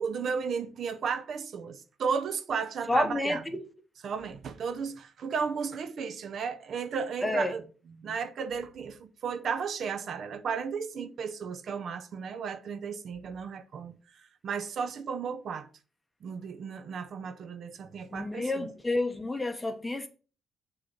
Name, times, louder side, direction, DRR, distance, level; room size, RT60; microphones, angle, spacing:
voice 1, 0.0-3.4 4.0-7.6 8.0-15.7 16.2-18.7, right 6 dB, 60° right, 0.5 m, -34 dB
voice 2, 2.9-3.7 7.2-7.5 18.1-20.1, left 2 dB, 15° left, 0.8 m, -29 dB
6.7 x 2.9 x 5.1 m
cardioid pair, 90°, 0 cm